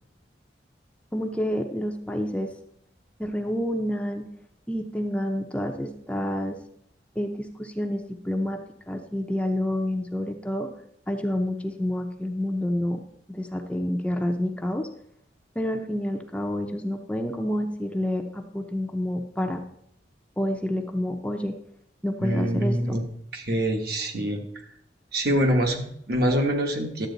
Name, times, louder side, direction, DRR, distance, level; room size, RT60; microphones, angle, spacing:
voice 1, 1.1-2.5 3.2-4.3 4.7-6.6 7.2-8.6 8.9-10.7 11.1-13.0 13.3-14.9 15.6-19.6 20.4-21.6 22.0-23.0, left 1 dB, 5° left, 3 dB, 0.6 m, -28 dB
voice 2, 22.2-23.0 23.3-24.4 25.1-27.1, right 1 dB, 60° right, 2 dB, 1.4 m, -25 dB
11.5 x 8.0 x 4.0 m, 0.73 s
head